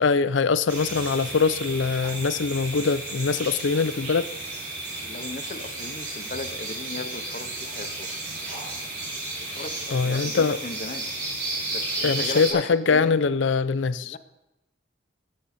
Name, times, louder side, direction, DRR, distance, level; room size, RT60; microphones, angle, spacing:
voice 1, 0.0-4.3 9.9-10.6 12.0-14.2, left 4 dB, 85° left, 0.5 m, -23 dB
sound 1, 0.7-12.5, right 2 dB, 65° right, 4.8 m, -33 dB
voice 2, 5.0-8.2 9.4-11.1 11.7-13.3 14.0-14.2, left 3 dB, 45° left, 0.7 m, -36 dB
19.5 x 7.7 x 4.2 m
head